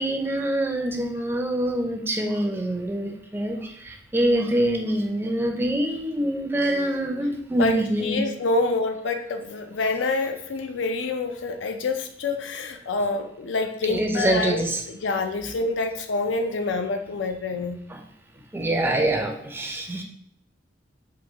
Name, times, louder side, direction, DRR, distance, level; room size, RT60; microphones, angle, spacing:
voice 1, 0.0-8.2 13.9-14.8 17.9-18.0 18.5-20.0, right 1 dB, 10° right, 3 dB, 0.4 m, -25 dB
voice 2, 7.6-17.8, left 3 dB, 85° left, 6 dB, 0.4 m, -27 dB
3.0 x 2.3 x 3.4 m, 0.72 s
head